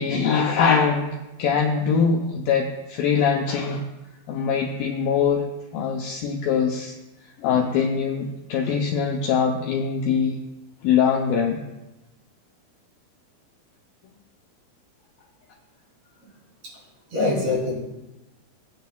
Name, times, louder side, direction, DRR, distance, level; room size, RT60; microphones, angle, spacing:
voice 1, 0.0-3.8 4.3-5.4 5.7-6.9 7.4-10.4 10.8-11.6, left 6 dB, 80° left, 1 dB, 2.1 m, -22 dB
voice 2, 17.1-17.8, left 2 dB, 45° right, -6 dB, 4.2 m, -25 dB
17.5 x 9.3 x 2.3 m, 0.99 s
omnidirectional pair, 4.7 m